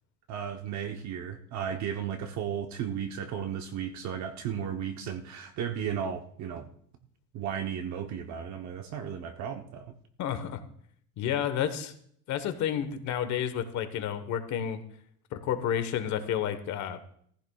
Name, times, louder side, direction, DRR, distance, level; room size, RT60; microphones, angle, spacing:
voice 1, 0.3-6.7 7.3-10.0, right 8 dB, 50° right, 5 dB, 0.9 m, -34 dB
voice 2, 10.2-10.6 11.2-11.9 12.3-14.8 15.3-17.0, left 9 dB, 50° left, 9 dB, 1.3 m, -30 dB
17.5 x 15.0 x 2.3 m, 0.63 s
cardioid pair, 170°, 37 cm